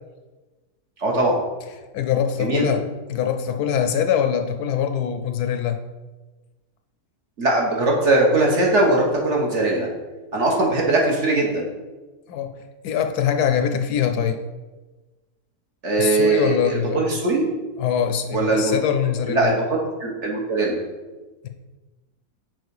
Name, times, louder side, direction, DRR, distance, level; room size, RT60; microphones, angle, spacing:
voice 1, 1.0-1.4 2.4-2.7 7.4-9.9 10.3-11.6 15.8-17.4 18.3-18.8 19.3-19.6 20.0-20.8, right 2 dB, 45° right, -1 dB, 1.4 m, -20 dB
voice 2, 1.9-5.8 12.3-12.6 12.8-14.4 16.0-17.1 17.8-19.5, left 8 dB, 75° left, 7 dB, 1.1 m, -23 dB
6.3 x 4.9 x 4.7 m, 1.2 s
omnidirectional pair, 1.8 m